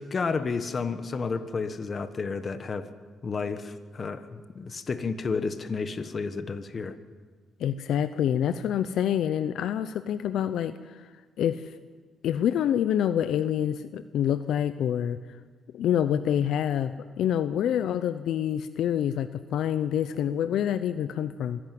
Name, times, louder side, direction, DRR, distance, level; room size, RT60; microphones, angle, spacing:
voice 1, 0.0-2.9 3.2-6.9, left 4 dB, 40° left, 11 dB, 1.4 m, -31 dB
voice 2, 7.6-11.1 11.4-11.7 12.2-15.2 15.7-16.9 17.2-21.6, left 10 dB, 75° left, 12 dB, 0.7 m, -27 dB
24.5 x 11.0 x 9.4 m, 1.5 s
cardioid pair, 90°, 0 cm